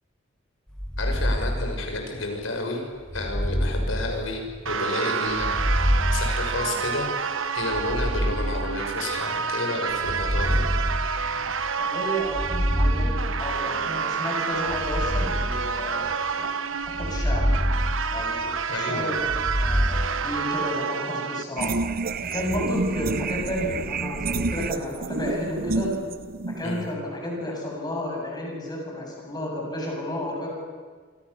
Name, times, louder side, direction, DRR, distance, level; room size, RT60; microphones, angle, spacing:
sound 1, 0.7-2.3 3.1-4.8 5.3-7.1 7.7-9.2 9.9-11.7 12.2-13.9 14.6-16.3 16.9-18.7 19.2-20.1, equal, 5° left, 1.5 m, -27 dB
voice 1, 1.0-2.8 3.1-10.7 18.7-19.2 26.6-26.9, left 2 dB, 80° left, 3 dB, 6.2 m, -31 dB
sound 2, 4.7-21.4, right 6 dB, 85° right, 1.2 m, -29 dB
voice 2, 11.8-17.4 18.1-21.8 22.3-25.9 26.6-30.5, left 1 dB, 20° left, -1 dB, 7.9 m, -32 dB
sound 3, 21.6-26.9, right 3 dB, 50° right, 0.8 m, -29 dB
26.5 x 26.0 x 7.0 m, 1.5 s
head